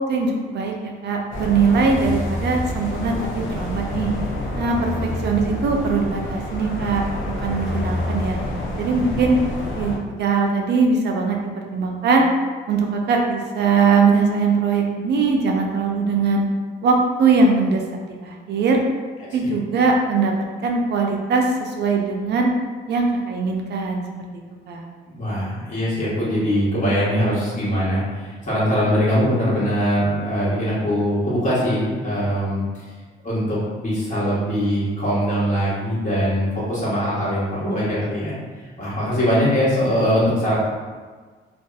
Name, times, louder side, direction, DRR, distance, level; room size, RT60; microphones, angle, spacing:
voice 1, 0.1-4.1 4.6-7.0 7.4-8.4 8.8-9.4 9.8-9.9 10.2-11.4 11.7-12.3 12.7-16.4 16.8-17.8 18.2-18.8 19.3-20.3 20.6-22.5 22.9-24.0 24.7-24.9, right 4 dB, 60° right, 1 dB, 0.4 m, -20 dB
sound 1, 1.3-10.0, left 1 dB, 75° left, 0.5 m, -27 dB
voice 2, 25.1-32.6 33.2-40.6, equal, 40° left, -9 dB, 1.2 m, -22 dB
2.7 x 2.3 x 2.2 m, 1.5 s
cardioid pair, 90°, 20 cm